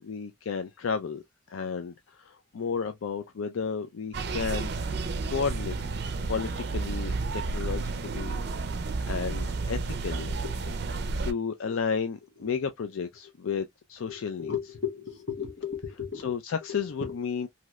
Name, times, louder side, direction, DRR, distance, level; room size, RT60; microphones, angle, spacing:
voice 1, 0.0-1.2 1.5-4.7 5.3-5.7 6.0-8.4 9.1-10.3 11.2-14.6 16.1-17.5, left 6 dB, 75° left, 0.4 m, -32 dB
sound 1, 4.1-11.3, right 3 dB, 50° right, 0.4 m, -31 dB
voice 2, 10.4-10.7 11.6-11.7 14.1-16.3 16.7-17.1, left 7 dB, 55° left, 0.9 m, -35 dB
3.1 x 2.7 x 2.3 m
head